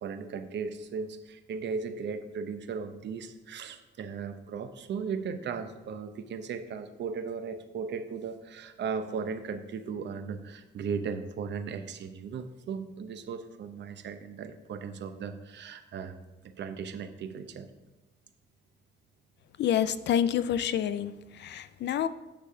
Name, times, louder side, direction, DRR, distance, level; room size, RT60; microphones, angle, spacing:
voice 1, 0.0-16.2 16.4-17.7, right 5 dB, 65° right, 9 dB, 0.7 m, -37 dB
voice 2, 19.6-21.1 21.4-22.1, left 9 dB, 60° left, 14 dB, 0.4 m, -27 dB
8.7 x 3.3 x 5.6 m, 1.1 s
cardioid pair, 90°, 20 cm